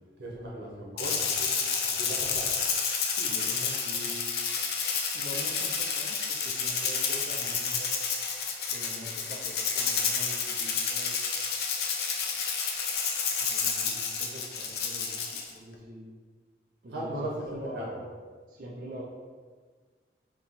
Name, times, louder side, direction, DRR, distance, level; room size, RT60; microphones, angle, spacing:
voice 1, 0.2-1.5 2.0-2.5 16.9-17.9, right 1 dB, 85° right, -4 dB, 1.0 m, -37 dB
Rattle (instrument), 1.0-15.5, left 5 dB, 60° left, 0.5 m, -30 dB
voice 2, 3.2-4.3 5.1-8.1 8.7-11.2 13.4-16.1 16.8-18.1 18.5-19.0, equal, 50° right, -4 dB, 0.5 m, -44 dB
3.7 x 2.8 x 4.1 m, 1.5 s
head